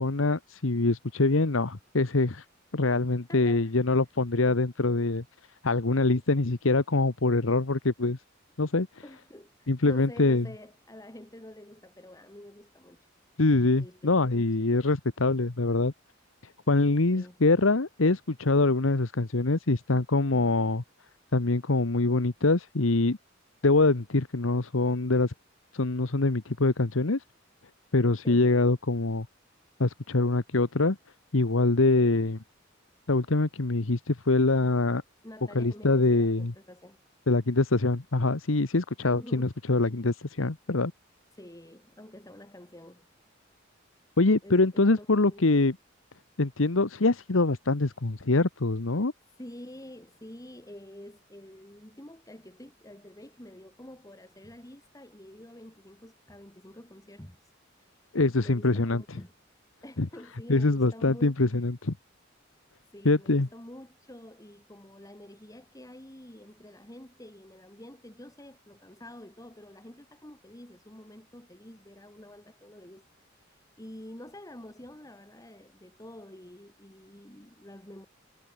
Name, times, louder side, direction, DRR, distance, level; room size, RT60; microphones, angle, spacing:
voice 1, 0.0-2.4 2.7-5.2 5.6-8.2 8.6-8.9 9.7-10.5 13.4-15.9 16.7-20.8 21.3-23.2 23.6-25.3 25.7-27.2 27.9-29.3 29.8-31.0 31.3-32.4 33.1-35.0 35.5-36.5 37.3-40.9 44.2-45.7 46.4-49.1 58.1-59.0 60.0-60.1 60.5-61.9 63.0-63.5, left 2 dB, 85° left, 1.2 m, -24 dB
voice 2, 3.3-3.7 9.0-13.1 13.7-14.6 17.1-17.4 28.2-28.5 35.2-37.0 39.1-39.5 41.3-43.1 44.4-45.5 49.4-58.0 58.4-59.3 59.8-61.3 62.9-78.1, left 1 dB, 20° left, 2.7 m, -48 dB
head